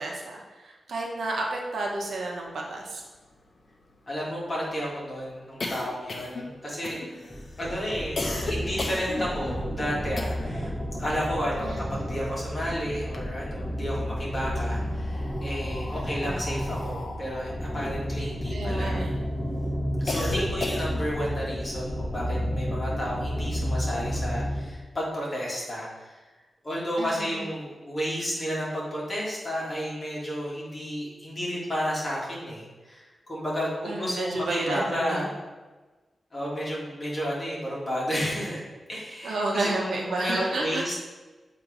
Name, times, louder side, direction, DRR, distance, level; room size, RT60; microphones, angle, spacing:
voice 1, 0.0-3.0 8.6-8.9 11.6-12.1 15.9-16.3 18.5-19.2 27.0-27.5 33.8-35.3 39.2-40.9, right 2 dB, 70° right, -1 dB, 1.0 m, -31 dB
sound 1, 2.5-2.6 2.8-2.9 3.2-10.7 11.0-12.5 12.9-13.8 14.6-19.1 19.5-21.2, left 2 dB, 45° left, 0.7 m, -36 dB
voice 2, 4.1-7.0 7.6-10.7 11.0-19.0 20.0-26.2 26.6-35.3 36.3-38.6 38.9-41.0, equal, 25° left, -6 dB, 1.8 m, -32 dB
sound 2, 7.3-24.7, equal, 10° left, 1.0 m, -31 dB
7.4 x 2.9 x 5.0 m, 1.2 s
wide cardioid pair, 165°, 0 cm